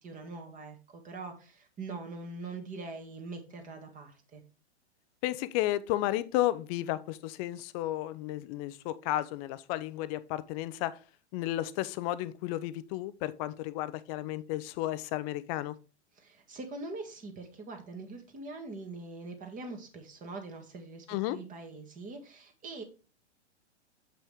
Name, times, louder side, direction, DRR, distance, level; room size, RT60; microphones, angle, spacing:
voice 1, 0.0-4.4 16.1-22.8, right 3 dB, 20° right, 1.8 m, -43 dB
voice 2, 5.2-11.0 11.3-15.7 21.1-21.4, left 15 dB, 35° left, 0.6 m, -33 dB
7.4 x 5.6 x 3.5 m
hypercardioid pair, 120°, 35 cm